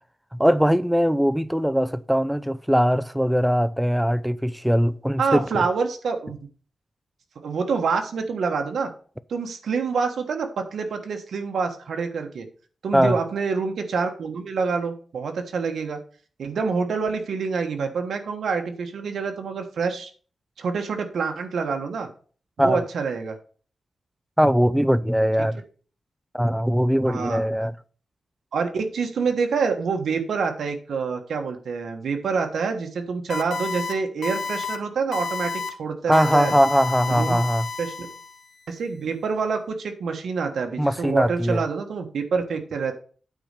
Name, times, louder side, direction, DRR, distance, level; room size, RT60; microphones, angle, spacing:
voice 1, 0.3-5.6 12.9-13.2 22.6-22.8 24.4-25.6 26.3-27.7 36.1-37.7 40.8-41.6, equal, ahead, 0.5 m, -21 dB
voice 2, 5.2-6.4 7.4-8.9 9.3-12.5 12.8-16.0 16.4-20.1 20.6-22.1 22.6-23.4 25.4-25.5 27.1-27.4 28.5-35.5 35.8-36.5 37.1-37.4 37.8-38.1 38.7-42.9, right 5 dB, 85° right, 1.4 m, -26 dB
sound 1, 33.3-33.9 34.2-34.8 35.1-35.7 36.1-38.4, left 4 dB, 75° left, 1.3 m, -31 dB
8.9 x 4.2 x 6.6 m
wide cardioid pair, 110°, 0 cm